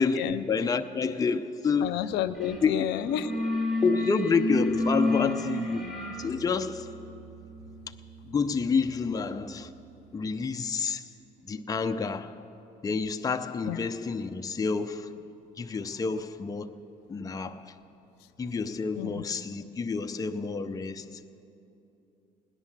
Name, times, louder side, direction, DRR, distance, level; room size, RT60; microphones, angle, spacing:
voice 1, 0.0-2.0 2.4-3.0 3.8-5.9 6.2-6.9 8.2-9.7 10.1-11.1 11.5-12.4 12.8-15.2 15.6-16.8 17.1-17.8 18.4-21.2, left 5 dB, 20° left, 0.5 m, -29 dB
voice 2, 1.8-3.6 13.7-13.9 19.0-19.2, left 10 dB, 85° left, 0.7 m, -31 dB
sound 1, 2.4-2.6 2.9-9.6, left 1 dB, ahead, 3.4 m, -32 dB
17.5 x 10.5 x 7.3 m
cardioid pair, 110°, 17 cm